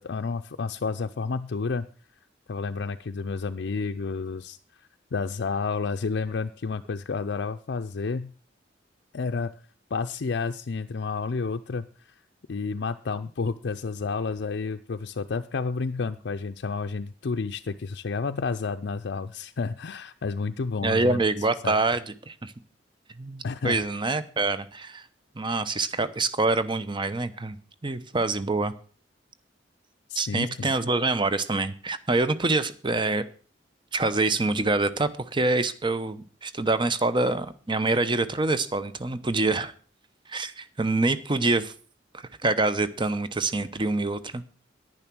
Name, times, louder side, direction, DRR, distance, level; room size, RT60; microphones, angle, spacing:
voice 1, 0.0-1.9 2.5-8.3 9.1-9.5 9.9-12.1 12.5-21.2 21.6-21.8 23.4-23.8 30.1-30.7, left 4 dB, 65° left, 6 dB, 0.5 m, -30 dB
voice 2, 20.8-22.5 23.2-25.0 25.4-27.6 27.8-28.7 30.1-33.2 33.9-39.7 40.3-41.7 42.1-44.4, right 3 dB, 25° right, 13 dB, 0.8 m, -26 dB
10.5 x 10.5 x 6.1 m, 0.40 s
head